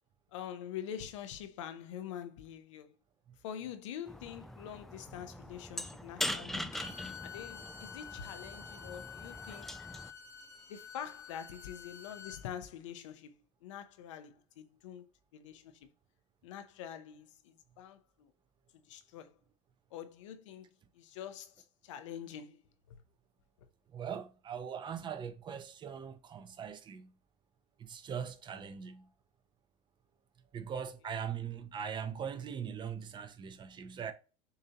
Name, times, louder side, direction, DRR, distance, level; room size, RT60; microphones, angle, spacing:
voice 1, 0.3-2.9 3.4-6.7 7.2-9.7 10.7-13.3 13.6-15.0 15.3-15.9 16.4-18.3 18.7-19.4 19.9-20.7 20.9-22.6 22.9-23.0, left 9 dB, 85° left, 0.7 m, -45 dB
sound 1, 4.1-10.1, left 1 dB, ahead, 0.4 m, -42 dB
Bowed string instrument, 6.7-12.4, left 6 dB, 20° left, 1.0 m, -49 dB
voice 2, 23.9-27.1 27.8-29.1 30.5-34.1, right 7 dB, 30° right, 0.7 m, -41 dB
6.6 x 2.8 x 2.8 m
supercardioid pair, 110°, 15 cm